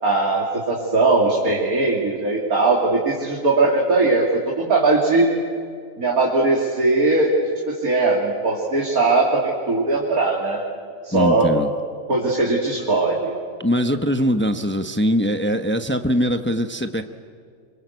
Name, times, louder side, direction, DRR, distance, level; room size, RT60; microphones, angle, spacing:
voice 1, 0.0-5.3 6.0-7.4 7.7-10.6 11.0-11.5 12.1-13.3, right 3 dB, 75° right, -2 dB, 3.3 m, -19 dB
voice 2, 11.1-11.7 13.6-17.0, equal, 10° left, 7 dB, 0.8 m, -21 dB
26.5 x 25.0 x 8.1 m, 2.2 s
omnidirectional pair, 1.5 m